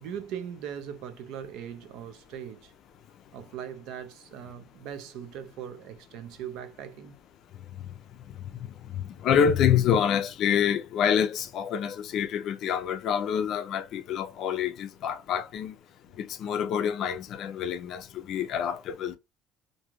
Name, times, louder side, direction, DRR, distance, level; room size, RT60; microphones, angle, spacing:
voice 1, 0.0-2.7 3.3-7.2, right 9 dB, 65° right, 0.5 m, -40 dB
voice 2, 8.3-15.8 16.2-19.2, left 8 dB, 45° left, 0.4 m, -27 dB
2.6 x 2.3 x 3.0 m
cardioid pair, 160°, 0 cm